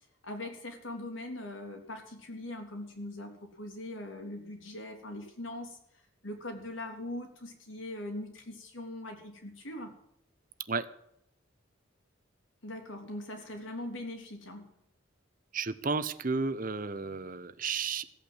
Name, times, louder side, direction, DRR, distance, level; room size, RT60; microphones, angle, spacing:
voice 1, 0.2-5.8 6.2-9.9 12.6-14.7, left 1 dB, 80° left, 3 dB, 3.6 m, -41 dB
voice 2, 15.5-18.1, right 4 dB, 45° right, 14 dB, 0.8 m, -32 dB
16.0 x 8.8 x 7.9 m, 0.76 s
head